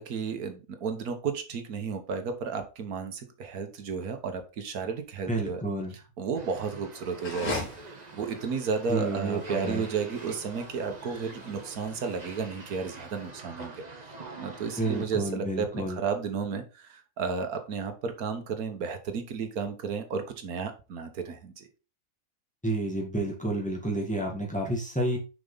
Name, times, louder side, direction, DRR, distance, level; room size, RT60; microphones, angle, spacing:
voice 1, 0.0-5.6 6.2-13.7 14.4-21.7, right 5 dB, 90° right, 6 dB, 1.6 m, -33 dB
voice 2, 5.3-5.9 8.9-9.8 14.8-16.0 22.6-25.2, right 1 dB, 5° left, 0 dB, 2.0 m, -30 dB
sound 1, 6.3-15.1, right 3 dB, 30° right, 1.2 m, -45 dB
sound 2, 7.1-13.2, left 2 dB, 85° left, 2.4 m, -40 dB
6.7 x 5.3 x 4.0 m, 0.31 s
omnidirectional pair, 1.5 m